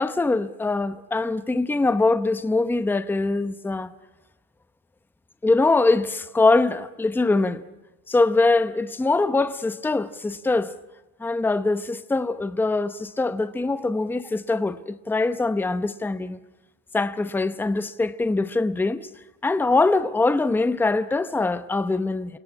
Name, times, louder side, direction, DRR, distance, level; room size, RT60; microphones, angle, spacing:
voice 1, 0.0-3.9 5.4-7.6 8.1-10.7 11.2-16.4 16.9-19.1 19.4-22.4, left 3 dB, 5° left, 0.8 m, -23 dB
29.5 x 17.5 x 9.8 m
cardioid pair, 140°, 36 cm